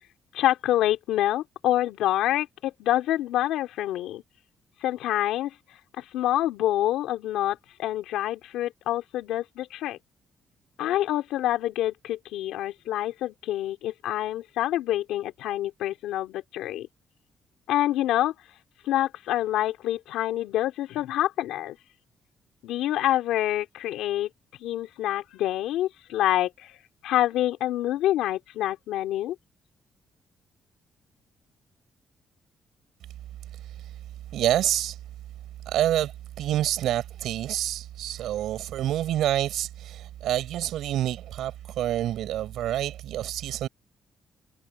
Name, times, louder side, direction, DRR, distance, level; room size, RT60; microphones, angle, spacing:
voice 1, 0.3-4.2 4.8-5.5 6.0-10.0 10.8-16.9 17.7-18.3 18.8-21.8 22.6-24.3 24.6-26.7 27.0-29.3, left 13 dB, 90° left, 3.2 m, -27 dB
voice 2, 33.5-34.0 34.3-35.0 35.7-43.7, right 12 dB, 80° right, 5.6 m, -28 dB
cardioid pair, 90°, 0 cm